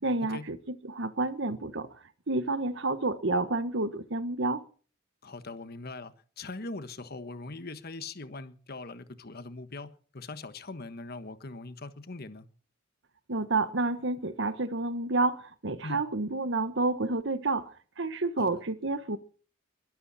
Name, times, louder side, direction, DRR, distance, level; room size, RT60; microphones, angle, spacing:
voice 1, 0.0-1.9 2.3-4.6 13.3-17.7 18.0-19.2, right 2 dB, 65° right, 1.3 m, -29 dB
voice 2, 5.2-12.4 15.8-16.0 18.4-18.5, left 3 dB, 50° left, 1.4 m, -41 dB
22.0 x 12.0 x 4.2 m
head